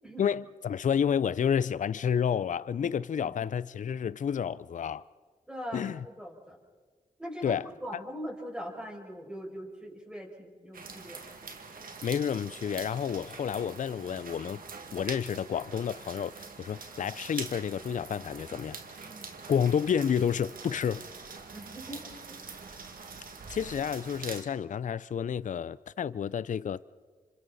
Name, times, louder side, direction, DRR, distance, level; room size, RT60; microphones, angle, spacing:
voice 1, 0.2-5.1 5.7-6.1 7.4-7.7 12.0-14.6 14.9-18.8 19.5-21.0 23.5-26.8, left 8 dB, 55° left, 0.5 m, -30 dB
voice 2, 2.8-3.3 5.5-6.6 7.2-11.4 19.1-19.3 21.5-22.4, equal, 5° right, 6.2 m, -42 dB
sound 1, 10.7-24.4, right 4 dB, 65° right, 2.2 m, -44 dB
28.0 x 25.5 x 4.1 m
supercardioid pair, 50°, 16 cm